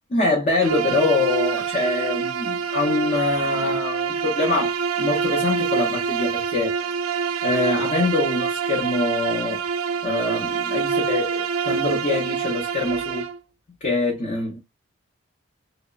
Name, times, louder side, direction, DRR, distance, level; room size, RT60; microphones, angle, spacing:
voice 1, 0.1-6.7 7.4-9.6 10.0-13.3 13.8-14.6, left 3 dB, 35° left, 0.6 m, -24 dB
Bowed string instrument, 0.6-13.4, right 6 dB, 80° right, 0.3 m, -26 dB
2.9 x 2.1 x 2.3 m
head